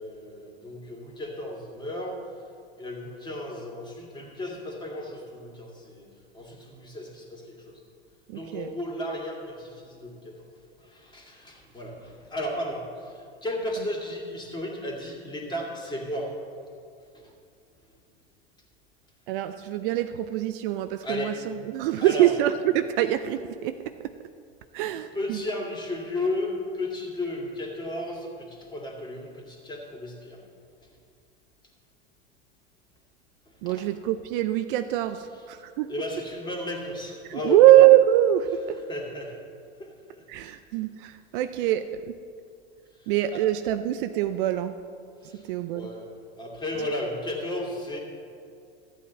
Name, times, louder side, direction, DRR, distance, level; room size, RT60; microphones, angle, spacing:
voice 1, 0.0-2.2 2.8-6.1 6.3-7.8 8.3-10.4 10.9-16.3 21.0-21.4 22.0-22.3 25.1-30.4 33.7-33.8 35.9-37.6 38.9-39.4 39.8-39.9 40.4-40.6 43.3-43.4 45.3-45.4 45.7-46.1 46.4-48.0, left 1 dB, 15° left, -1 dB, 2.2 m, -34 dB
voice 2, 8.3-8.7 19.3-24.2 24.7-25.4 33.6-35.9 37.3-38.8 40.3-42.2 43.1-44.8 45.4-45.9, right 13 dB, 55° right, 10 dB, 0.5 m, -23 dB
13.5 x 8.4 x 4.2 m, 2.4 s
hypercardioid pair, 100°, 32 cm